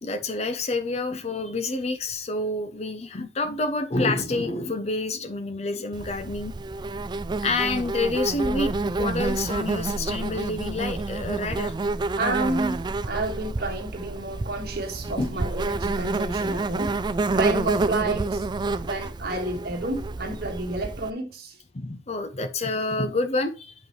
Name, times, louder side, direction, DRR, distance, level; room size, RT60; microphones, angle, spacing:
voice 1, 0.0-6.5 7.4-11.7 15.0-15.4 21.7-23.7, left 2 dB, 35° left, 0.6 m, -28 dB
Insect, 5.9-21.1, right 3 dB, 25° right, 0.3 m, -28 dB
voice 2, 12.2-16.9 17.3-18.4 18.8-21.6, right 2 dB, 55° right, 1.6 m, -30 dB
7.5 x 5.2 x 3.2 m
head